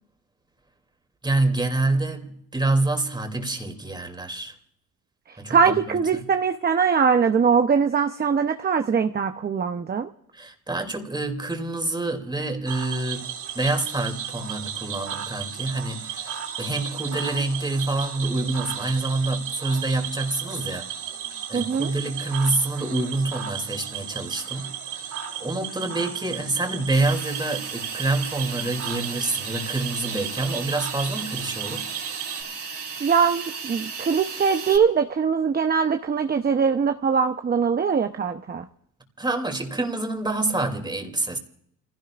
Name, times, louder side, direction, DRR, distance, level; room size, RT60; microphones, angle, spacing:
voice 1, 1.2-4.5 5.4-6.2 10.3-13.3 13.5-20.9 21.5-24.7 25.4-31.9 39.2-41.4, right 2 dB, 15° right, 2.8 m, -27 dB
voice 2, 5.5-10.1 21.5-21.9 33.0-38.7, right 6 dB, 30° right, 0.8 m, -22 dB
Cricket / Frog, 12.7-32.4, right 9 dB, 75° right, 2.8 m, -34 dB
Hiss, 26.9-34.8, right 5 dB, 50° right, 3.3 m, -35 dB
29.5 x 16.5 x 2.5 m
cardioid pair, 90°, 30 cm